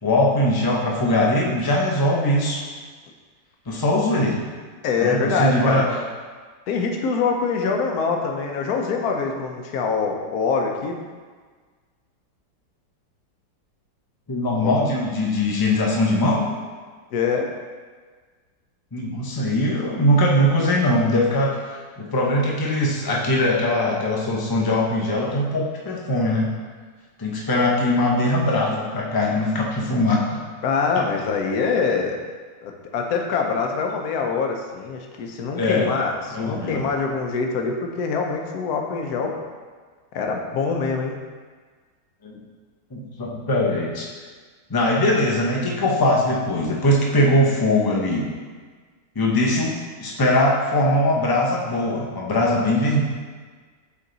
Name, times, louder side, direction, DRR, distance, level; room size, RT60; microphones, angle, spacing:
voice 1, 0.0-2.6 3.7-4.4 5.0-5.8 14.3-16.5 18.9-26.5 27.2-30.4 35.6-36.0 36.3-36.8 42.2-42.4 42.9-44.1 44.7-48.3 49.1-53.0, left 1 dB, 25° left, -3 dB, 0.5 m, -21 dB
voice 2, 4.8-6.0 6.7-11.0 14.6-14.7 17.1-17.5 30.6-32.2 32.6-39.4 40.1-41.2, left 5 dB, 65° left, 2 dB, 1.2 m, -24 dB
8.4 x 3.5 x 3.9 m, 1.5 s
omnidirectional pair, 1.9 m